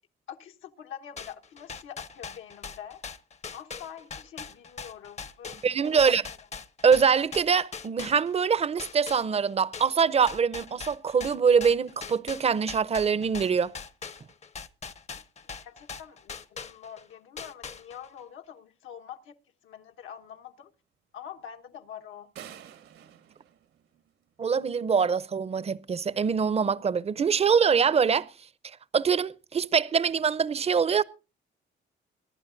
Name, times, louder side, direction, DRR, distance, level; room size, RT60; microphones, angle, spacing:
voice 1, 0.3-3.0 3.5-5.6 5.9-6.4 15.6-19.4 19.6-20.7 21.1-22.3, left 9 dB, 80° left, 1.3 m, -45 dB
sound 1, 1.2-8.5 8.8-17.0 17.4-18.2, left 5 dB, 35° left, 0.8 m, -41 dB
voice 2, 5.6-6.2 6.8-13.7 24.4-28.3 28.6-31.0, right 6 dB, 30° right, 0.6 m, -24 dB
sound 2, 22.4-24.5, right 10 dB, 85° right, 1.8 m, -48 dB
24.0 x 11.5 x 2.6 m
cardioid pair, 90°, 20 cm